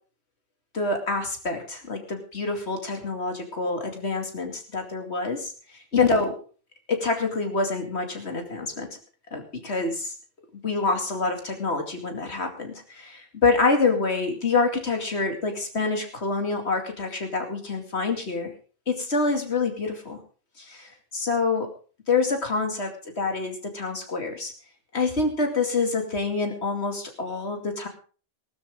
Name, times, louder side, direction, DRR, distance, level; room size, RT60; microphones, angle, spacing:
voice 1, 0.7-6.4 6.9-8.9 9.3-10.1 10.6-18.5 18.9-20.2 20.6-21.7 22.1-24.5 24.9-27.9, left 3 dB, 90° left, 4 dB, 2.8 m, -26 dB
19.5 x 12.5 x 3.7 m, 0.40 s
omnidirectional pair, 1.1 m